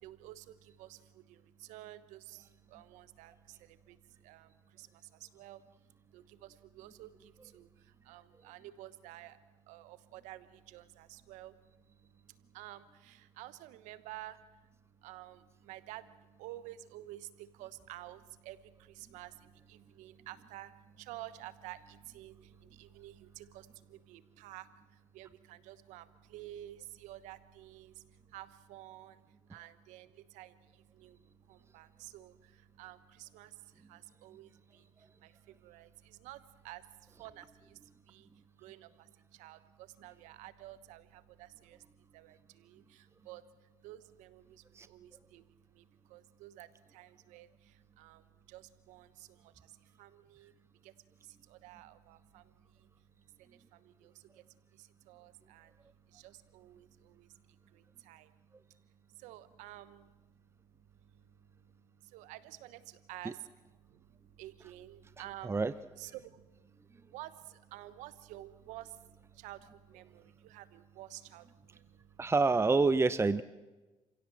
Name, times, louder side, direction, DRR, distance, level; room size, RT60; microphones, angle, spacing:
voice 1, 0.0-5.6 6.1-9.4 9.7-11.5 12.5-14.4 15.0-29.2 29.5-38.3 38.6-41.8 42.1-43.4 43.8-50.5 50.8-50.9 51.2-52.5 52.8-52.9 53.4-54.4 54.7-55.7 56.1-58.3 59.1-60.1 61.1-61.2 62.0-64.0 64.4-65.6 66.0-72.3, right 14 dB, 90° right, 15 dB, 1.2 m, -51 dB
voice 2, 72.2-73.4, right 3 dB, 20° right, 15 dB, 0.8 m, -27 dB
28.0 x 16.5 x 7.7 m, 1.2 s
supercardioid pair, 75°, 12 cm